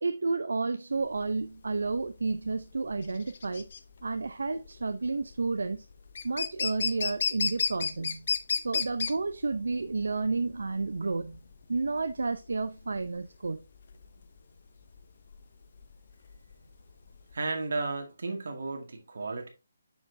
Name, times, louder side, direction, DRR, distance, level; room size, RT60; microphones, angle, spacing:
voice 1, 0.0-3.6 4.0-5.9 6.2-8.2 8.6-11.4 11.7-13.6, right 3 dB, 85° right, 0.6 m, -31 dB
sound 1, 1.0-17.3, left 5 dB, 50° left, 0.7 m, -34 dB
voice 2, 17.3-19.5, right 3 dB, 65° right, 2.1 m, -33 dB
7.0 x 6.2 x 2.7 m
hypercardioid pair, 165°, 0 cm